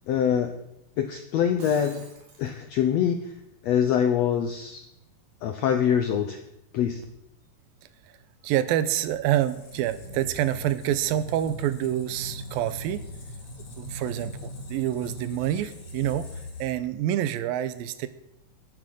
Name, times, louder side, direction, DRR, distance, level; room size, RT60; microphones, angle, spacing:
voice 1, 0.1-0.5 1.0-2.1 2.4-3.3 3.6-4.8 5.4-6.4 6.7-7.0, left 8 dB, 80° left, 6 dB, 1.5 m, -24 dB
Shatter, 1.6-2.5, right 3 dB, 60° right, 3.9 m, -48 dB
voice 2, 8.4-13.1 13.8-16.3 16.6-18.1, right 12 dB, 85° right, 14 dB, 2.5 m, -27 dB
Squeak, 9.1-16.9, equal, 55° left, 4.7 m, -40 dB
12.0 x 10.0 x 6.5 m, 0.82 s
omnidirectional pair, 4.1 m